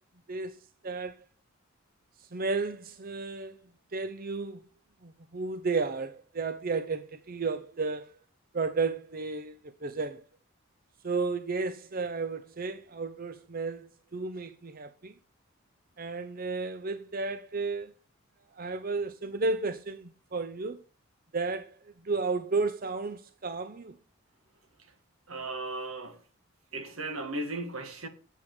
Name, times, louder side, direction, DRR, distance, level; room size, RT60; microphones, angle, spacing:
voice 1, 0.3-1.2 2.2-3.6 3.9-4.6 5.0-8.1 8.5-10.3 11.0-15.1 16.0-17.9 18.5-20.8 21.3-24.0, right 3 dB, 40° right, 0.7 m, -33 dB
voice 2, 25.3-26.2 26.7-28.1, right 2 dB, 75° right, 2.1 m, -36 dB
8.8 x 8.3 x 6.2 m
head